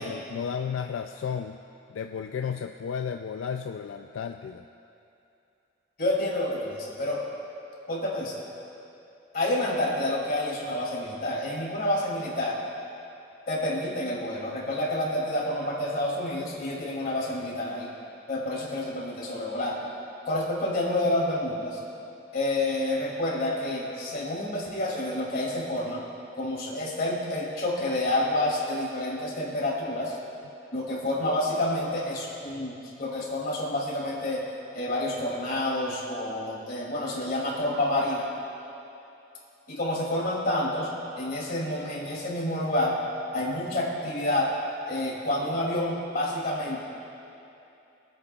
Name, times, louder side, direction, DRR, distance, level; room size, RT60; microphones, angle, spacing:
voice 1, 0.0-1.6 1.9-4.6, left 7 dB, 85° left, 6 dB, 0.3 m, -33 dB
voice 2, 6.0-7.2 7.9-8.4 9.3-12.6 13.5-17.9 18.3-19.8 20.3-21.8 22.3-26.0 26.4-30.2 30.7-34.4 34.7-38.3 39.7-40.9 41.2-43.0 43.3-44.5 44.9-46.8, left 1 dB, 50° left, -4 dB, 2.7 m, -28 dB
26.0 x 8.7 x 2.4 m, 2.8 s
head